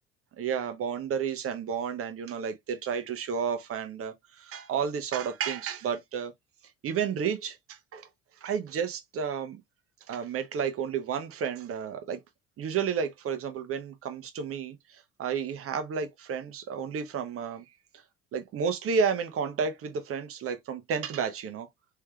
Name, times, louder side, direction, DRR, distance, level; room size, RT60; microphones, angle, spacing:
voice 1, 0.4-6.3 6.8-8.1 8.4-9.6 10.1-12.2 12.6-17.6 18.3-21.7, right 6 dB, 40° right, 0.8 m, -31 dB
3.3 x 3.3 x 2.2 m
hypercardioid pair, 55°, 35 cm